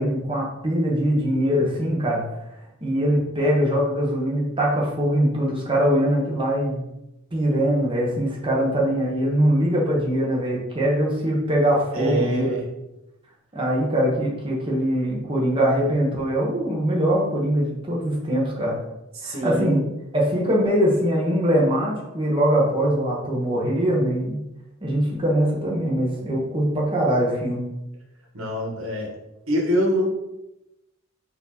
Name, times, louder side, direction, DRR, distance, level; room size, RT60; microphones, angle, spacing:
voice 1, 0.0-2.2 2.8-6.8 7.3-12.5 13.5-18.8 19.2-19.8 20.1-24.4 24.8-27.7, equal, 25° right, -4 dB, 1.1 m, -22 dB
voice 2, 11.9-12.7 19.1-19.8 28.3-29.1 29.5-30.1, equal, 80° right, -1 dB, 1.3 m, -24 dB
4.3 x 2.8 x 4.0 m, 0.91 s
head